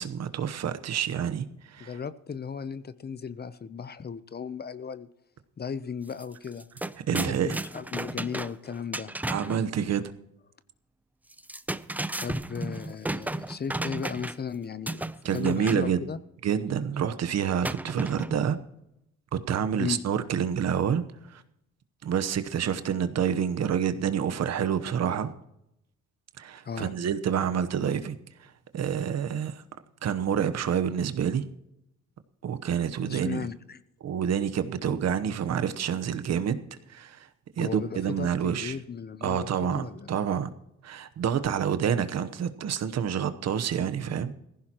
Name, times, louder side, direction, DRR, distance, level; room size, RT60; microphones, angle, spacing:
voice 1, 0.0-1.9 7.1-7.6 9.3-10.1 15.2-16.0 16.4-18.6 19.3-21.4 22.0-25.3 26.4-29.6 30.0-31.4 32.4-33.4 34.0-36.6 36.9-37.3 37.6-38.8 39.2-40.5 40.8-44.3, right 8 dB, 60° right, 1.0 m, -28 dB
voice 2, 1.8-5.1 5.6-6.7 7.1-9.1 12.2-15.0 15.3-16.2 19.8-20.0 26.6-26.9 33.0-33.8 37.6-40.1, left 6 dB, 35° left, 0.7 m, -36 dB
sound 1, 6.1-6.2 6.5-9.6 11.3-14.5 14.9-15.9 17.6-18.5, right 1 dB, 5° right, 0.5 m, -33 dB
18.0 x 15.5 x 3.0 m
cardioid pair, 90°, 30 cm